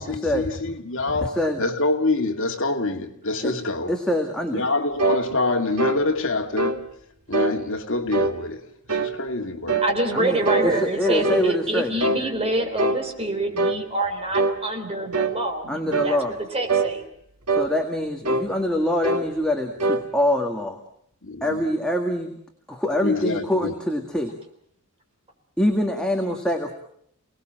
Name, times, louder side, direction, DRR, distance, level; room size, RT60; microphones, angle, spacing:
voice 1, 0.0-3.9 4.5-6.8 7.3-8.6 9.0-9.8 21.2-21.6 23.0-23.4, left 2 dB, 60° left, 2.4 m, -25 dB
voice 2, 1.2-1.6 3.4-3.6 3.9-4.7 10.1-11.9 15.7-16.3 17.6-20.8 21.4-22.3 22.7-24.3 25.6-26.7, left 1 dB, 5° left, 1.9 m, -24 dB
sound 1, 5.0-5.2 5.8-6.0 6.6-6.8 7.3-7.6 8.1-8.4 8.9-9.2 9.7-9.9 10.5-11.5 12.0-12.3 12.8-13.0 13.6-13.8 14.3-14.6 15.1-15.4 15.9-16.2 16.7-16.9 17.5-17.7 18.3-18.5 19.0-19.3 19.8-20.0, right 3 dB, 85° right, 2.1 m, -23 dB
voice 3, 9.8-17.0, right 2 dB, 25° right, 3.8 m, -26 dB
29.5 x 19.5 x 7.7 m
head